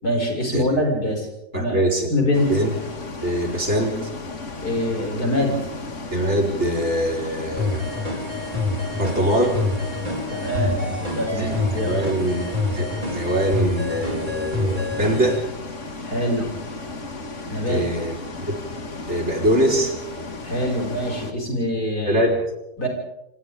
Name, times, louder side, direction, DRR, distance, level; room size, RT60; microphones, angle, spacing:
voice 1, 0.0-1.3 1.5-2.6 4.6-5.6 10.3-12.0 16.0-16.5 17.5-17.8 20.4-22.2 22.8-22.9, left 1 dB, 85° left, 1 dB, 6.9 m, -24 dB
voice 2, 1.5-2.1 2.5-2.7 3.2-4.1 6.1-7.9 8.9-9.6 11.4-15.4 17.7-18.2 18.5-18.6 19.1-19.9 22.1-22.4, right 1 dB, 45° right, 1 dB, 4.7 m, -23 dB
Bus, 2.3-21.3, left 3 dB, 50° left, 2.5 m, -35 dB
sound 1, 7.6-15.4, left 2 dB, 30° right, 4.4 m, -27 dB
27.5 x 26.0 x 3.7 m, 0.93 s
omnidirectional pair, 1.6 m